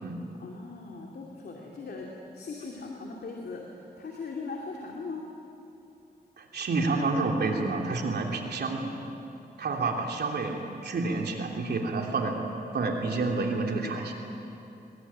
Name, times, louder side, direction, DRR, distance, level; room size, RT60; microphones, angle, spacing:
voice 1, 0.4-5.2, left 4 dB, 80° left, -1 dB, 2.8 m, -39 dB
voice 2, 6.4-8.9 9.6-12.3 12.7-14.1, right 3 dB, 90° right, 1 dB, 3.1 m, -29 dB
23.5 x 22.5 x 10.0 m, 2.9 s
wide cardioid pair, 130°, 16 cm